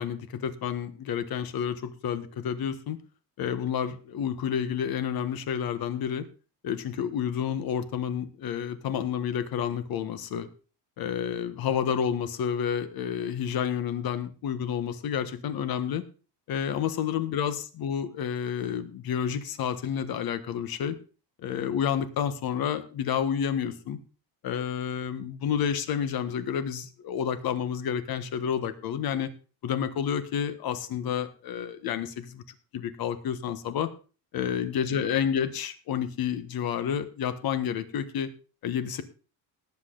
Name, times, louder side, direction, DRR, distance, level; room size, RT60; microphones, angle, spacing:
voice 1, 0.0-3.0 3.4-6.3 6.6-10.5 11.0-16.0 16.5-21.0 21.4-24.0 24.4-29.3 29.6-32.4 32.7-33.9 34.3-38.3 38.6-39.0, left 8 dB, 55° left, 11 dB, 1.5 m, -30 dB
18.5 x 8.1 x 3.9 m, 0.35 s
cardioid pair, 150°, 44 cm